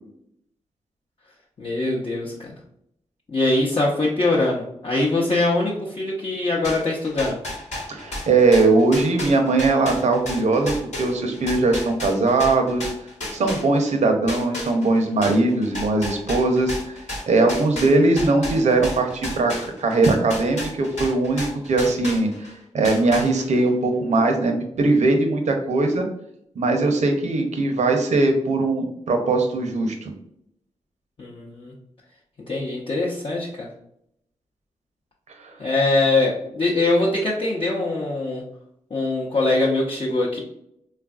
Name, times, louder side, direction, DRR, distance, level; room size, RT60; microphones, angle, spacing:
voice 1, 1.6-2.5 3.3-7.4 31.2-31.7 32.5-33.7 35.6-38.4 38.9-40.4, left 2 dB, 50° left, -4 dB, 0.7 m, -22 dB
sound 1, 6.6-14.0 14.3-22.5 22.8-23.7, left 1 dB, 75° left, 1.1 m, -32 dB
voice 2, 7.9-12.9 13.3-17.0 17.3-22.3 22.7-26.0 26.6-30.1 35.4-35.6, right 3 dB, 75° right, 4 dB, 0.6 m, -20 dB
3.4 x 2.4 x 2.3 m, 0.75 s
cardioid pair, 40°, 12 cm